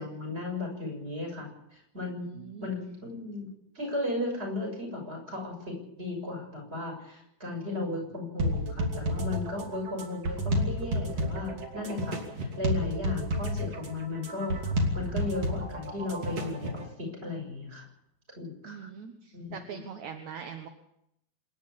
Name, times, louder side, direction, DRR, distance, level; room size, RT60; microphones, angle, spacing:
voice 1, 0.0-3.5 3.7-14.6 14.9-17.9 18.4-18.9 19.3-19.8, left 2 dB, 15° right, 1 dB, 7.2 m, -35 dB
voice 2, 2.2-2.7 7.6-8.0 9.9-10.1 18.6-20.7, right 7 dB, 60° right, 6 dB, 2.1 m, -43 dB
sound 1, 8.4-16.8, equal, 40° right, 3.7 m, -31 dB
26.5 x 11.5 x 8.7 m, 0.80 s
omnidirectional pair, 4.5 m